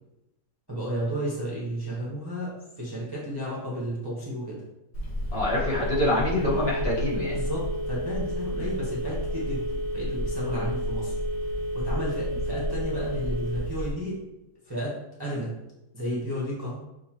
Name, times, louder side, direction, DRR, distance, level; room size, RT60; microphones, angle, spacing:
voice 1, 0.7-2.5 2.8-4.6 7.3-9.6 9.9-11.1 11.7-14.1 14.7-14.9 15.2-15.5 15.9-16.7, equal, 20° right, -7 dB, 0.8 m, -32 dB
Telephone, 4.9-13.9, equal, 90° left, 1.9 m, -30 dB
voice 2, 5.3-7.3 8.6-8.7 10.5-10.7, left 1 dB, 45° left, -7 dB, 1.1 m, -26 dB
6.3 x 2.6 x 2.9 m, 0.92 s
omnidirectional pair, 1.7 m